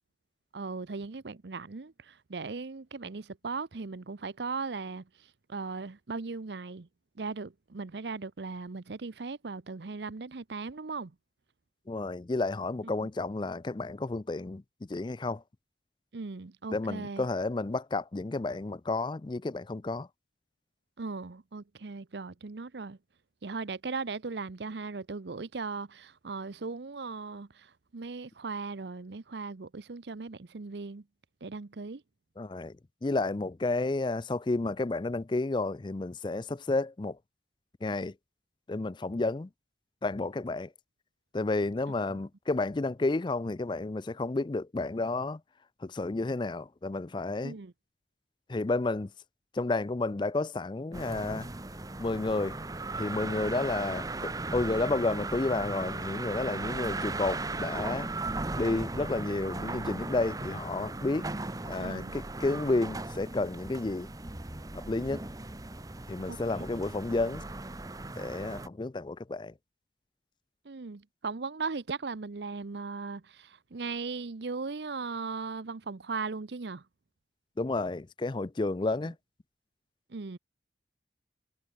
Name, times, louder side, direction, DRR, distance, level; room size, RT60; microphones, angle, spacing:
voice 1, 0.5-6.9 7.2-11.1 12.8-13.0 16.1-17.3 21.0-23.0 23.4-31.0 31.4-32.0 47.4-47.7 61.8-62.2 66.3-66.7 70.6-76.8 80.1-80.4, right 4 dB, 75° right, 0.7 m, -38 dB
voice 2, 11.9-15.4 16.7-20.1 32.4-32.8 33.0-37.2 37.8-38.1 38.7-39.5 40.0-40.7 41.3-45.4 45.8-47.6 48.5-49.1 49.5-51.5 52.0-52.6 52.9-58.1 58.6-61.3 61.6-64.1 64.7-65.2 66.1-67.4 68.2-69.5 77.6-79.2, left 2 dB, 25° left, 0.4 m, -31 dB
sound 1, 50.9-68.7, right 2 dB, 20° right, 1.1 m, -37 dB
head